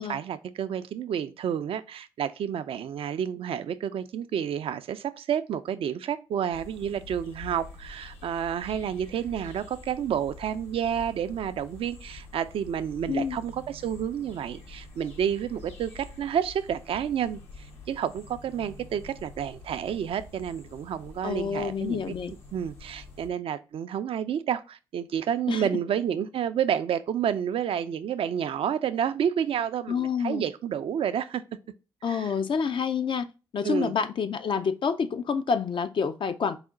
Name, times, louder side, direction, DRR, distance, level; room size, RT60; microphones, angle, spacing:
voice 1, 0.0-22.1 22.5-31.4 32.1-32.3 33.6-33.9, right 9 dB, 65° right, 0.4 m, -30 dB
sound 1, 6.5-23.3, left 3 dB, 75° left, 1.2 m, -47 dB
voice 2, 21.2-22.3 25.5-25.6 29.9-30.5 32.0-33.3 33.5-36.6, left 6 dB, 55° left, 0.5 m, -28 dB
4.9 x 2.1 x 3.6 m
hypercardioid pair, 40°, 10 cm